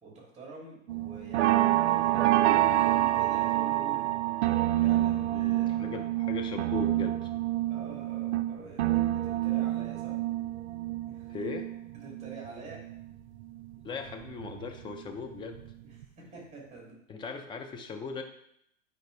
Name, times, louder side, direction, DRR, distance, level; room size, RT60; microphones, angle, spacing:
voice 1, 0.0-4.1 4.8-5.8 7.7-10.2 11.1-11.3 11.9-12.8 16.3-16.9, right 3 dB, 15° right, -3 dB, 3.1 m, -45 dB
sound 1, 0.9-13.0 13.4-15.0 15.4-15.7 16.0-16.1, right 15 dB, 55° right, 0.6 m, -28 dB
voice 2, 5.3-7.3 11.3-11.7 13.8-15.6 17.1-18.2, left 4 dB, 10° left, 5 dB, 0.6 m, -38 dB
8.9 x 5.4 x 3.4 m, 0.74 s
hypercardioid pair, 110°, 42 cm